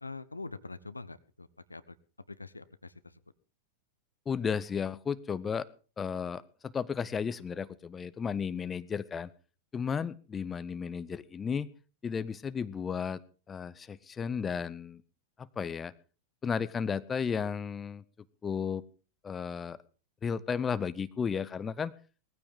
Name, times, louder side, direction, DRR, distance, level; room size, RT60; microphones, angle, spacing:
voice 1, 0.0-2.0 2.3-3.2, left 3 dB, 80° left, 15 dB, 0.8 m, -44 dB
voice 2, 4.3-5.7 6.0-9.3 9.7-11.7 12.0-13.2 13.5-15.0 15.6-15.9 16.4-18.0 18.4-18.8 19.2-19.8 20.2-21.9, left 6 dB, 20° left, 16 dB, 0.8 m, -33 dB
19.5 x 15.0 x 3.7 m, 0.37 s
figure-of-eight pair, 90°, 0 cm